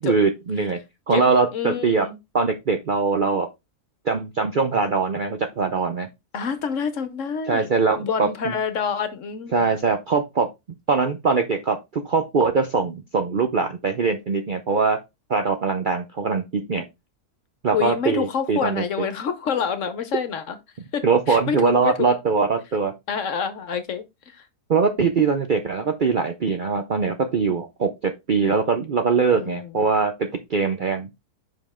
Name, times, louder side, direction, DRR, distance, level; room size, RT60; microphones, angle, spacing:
voice 1, 0.0-0.8 1.1-2.1 2.3-3.5 4.1-6.1 7.5-8.5 9.5-10.5 10.9-15.0 15.3-16.9 17.6-19.1 21.0-22.9 24.7-31.1, right 5 dB, 50° right, 0.6 m, -22 dB
voice 2, 1.5-2.2 6.3-7.7 8.0-9.7 17.7-20.6 20.9-22.1 23.1-24.4 29.3-29.7, left 7 dB, 60° left, 1.1 m, -27 dB
5.6 x 5.2 x 3.5 m
omnidirectional pair, 1.6 m